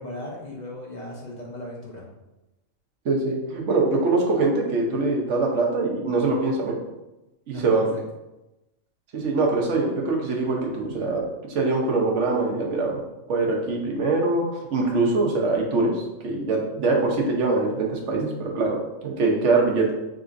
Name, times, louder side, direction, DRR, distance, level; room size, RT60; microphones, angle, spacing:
voice 1, 0.0-2.0 7.5-8.0, equal, 40° left, -3 dB, 0.8 m, -37 dB
voice 2, 3.0-6.8 7.5-7.9 9.1-11.2 11.5-13.0 13.3-19.9, right 3 dB, 60° right, 0 dB, 1.1 m, -23 dB
5.0 x 3.6 x 2.5 m, 0.98 s
omnidirectional pair, 1.4 m